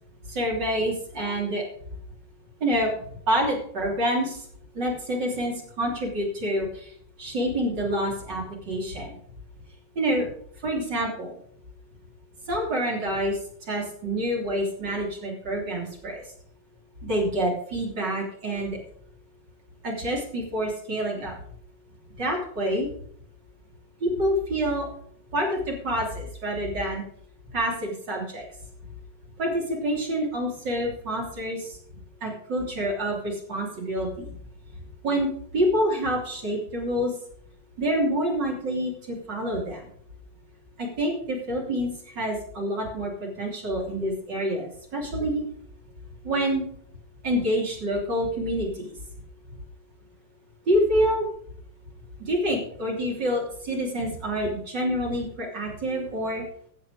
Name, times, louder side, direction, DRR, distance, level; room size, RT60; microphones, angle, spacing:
voice 1, 0.3-1.6 2.6-2.9 3.3-4.4 4.7-6.9 7.2-9.2 9.9-10.3 10.6-11.3 12.5-13.4 13.7-16.2 17.0-18.8 19.8-21.3 22.2-22.9 24.0-24.9 25.3-27.0 27.5-28.4 29.4-31.7 32.2-34.3 35.0-35.3 35.5-37.1 37.8-39.8 40.8-41.9 42.1-45.4 46.2-46.7 47.2-48.9 50.7-51.3 52.3-56.4, equal, 30° right, -1 dB, 3.2 m, -27 dB
15.0 x 7.6 x 4.9 m, 0.63 s
omnidirectional pair, 4.5 m